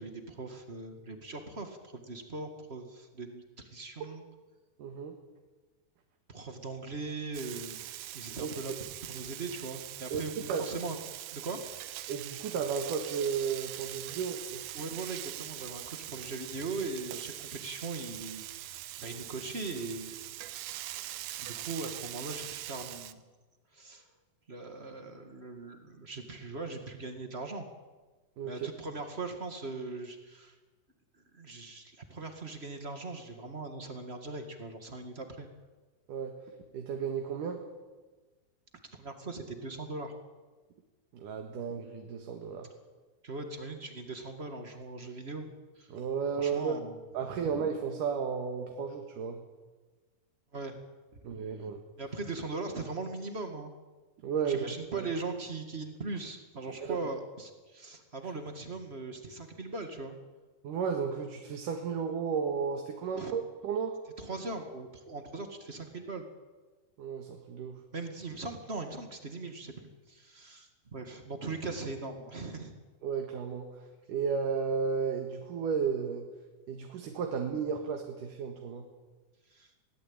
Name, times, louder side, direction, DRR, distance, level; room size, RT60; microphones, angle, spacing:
voice 1, 0.0-4.2 6.3-7.9 8.1-11.0 11.3-11.6 14.1-14.2 14.7-20.2 21.4-23.2 23.7-24.0 24.5-27.7 28.4-30.6 31.3-35.5 38.9-40.1 43.2-45.5 45.8-45.9 46.4-47.0 47.3-47.5 50.5-50.8 51.1-51.2 52.0-53.7 54.4-60.1 63.1-63.3 64.2-66.2 67.9-72.7 79.5-79.7, right 3 dB, 40° right, 6 dB, 0.9 m, -40 dB
voice 2, 4.8-5.2 8.4-8.5 10.1-10.2 10.5-10.6 12.1-14.6 28.4-28.7 36.1-36.3 36.7-37.6 41.1-42.7 45.9-46.8 47.1-49.4 51.2-51.8 54.2-55.1 56.9-57.0 60.6-64.0 67.0-67.7 73.0-73.7 74.1-76.2 76.7-78.8, right 6 dB, 60° right, 4 dB, 3.0 m, -33 dB
Frying (food), 7.3-23.1, right 14 dB, 80° right, 2.8 m, -42 dB
22.0 x 18.0 x 8.9 m, 1.3 s
omnidirectional pair, 4.5 m